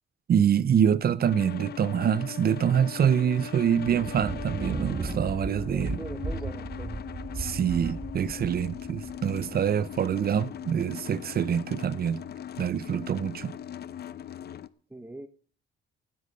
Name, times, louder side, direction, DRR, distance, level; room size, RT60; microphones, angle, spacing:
voice 1, 0.3-6.0 7.4-12.2 12.6-13.5, right 8 dB, 50° right, 0.8 m, -25 dB
sound 1, 1.2-14.7, left 9 dB, 55° left, 0.7 m, -40 dB
Thunder, 3.7-10.3, right 3 dB, 25° right, 1.4 m, -36 dB
voice 2, 5.7-7.0 14.9-15.3, right 1 dB, 10° right, 1.0 m, -41 dB
16.0 x 7.7 x 6.6 m
cardioid pair, 90°, 20 cm